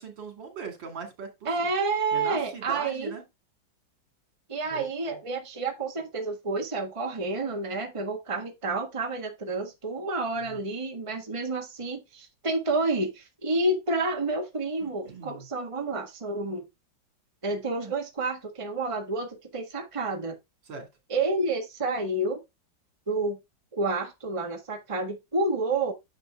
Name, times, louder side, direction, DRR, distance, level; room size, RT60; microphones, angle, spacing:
voice 1, 0.0-1.7 2.1-3.2 4.7-5.2 10.4-10.6 14.8-15.5 20.7-20.9, right 5 dB, 75° right, 3.1 m, -40 dB
voice 2, 1.4-3.1 4.5-16.6 17.4-20.3 21.1-22.4 23.1-23.4 23.7-25.9, right 2 dB, 20° right, 1.5 m, -29 dB
10.5 x 6.7 x 2.2 m
omnidirectional pair, 2.0 m